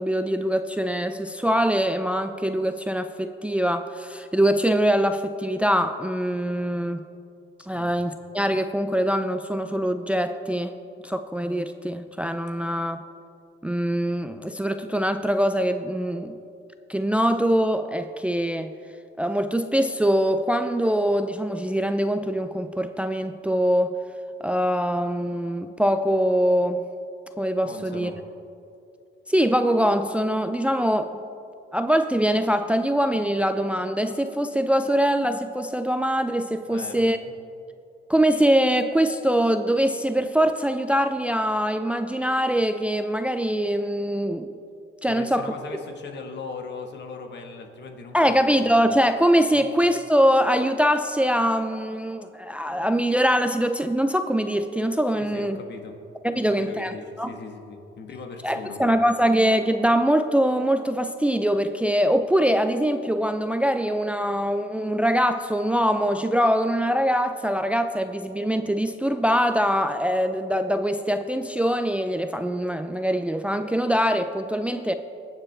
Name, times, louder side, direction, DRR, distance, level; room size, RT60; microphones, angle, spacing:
voice 1, 0.0-7.0 7.6-10.7 11.0-13.0 13.6-16.4 16.9-18.7 19.2-24.0 24.4-26.8 27.4-28.1 29.3-31.2 31.7-37.2 38.1-44.5 45.0-45.5 48.1-55.6 56.2-57.3 58.4-74.9, equal, 5° right, 9 dB, 0.4 m, -23 dB
voice 2, 27.6-28.2 36.7-37.4 45.0-48.7 49.5-49.7 55.1-56.0 56.3-59.0, left 4 dB, 60° left, 4 dB, 1.4 m, -39 dB
21.0 x 7.3 x 3.3 m, 2.6 s
cardioid pair, 90°, 20 cm